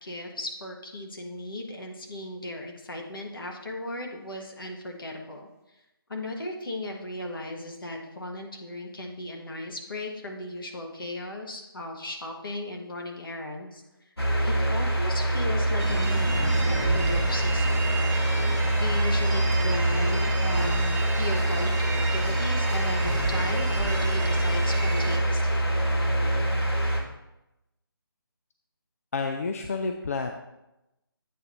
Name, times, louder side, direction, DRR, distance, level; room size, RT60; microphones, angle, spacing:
voice 1, 0.0-5.5 6.1-13.8 14.4-17.9 18.8-25.7, left 1 dB, 65° left, 2 dB, 1.4 m, -36 dB
sound 1, 14.2-27.0, right 1 dB, 80° left, 1.6 m, -25 dB
sound 2, 15.8-25.2, right 4 dB, 45° right, 1.2 m, -33 dB
voice 2, 29.1-30.3, left 4 dB, 40° left, 5 dB, 0.4 m, -29 dB
8.3 x 2.9 x 6.1 m, 0.92 s
figure-of-eight pair, 155°, 13 cm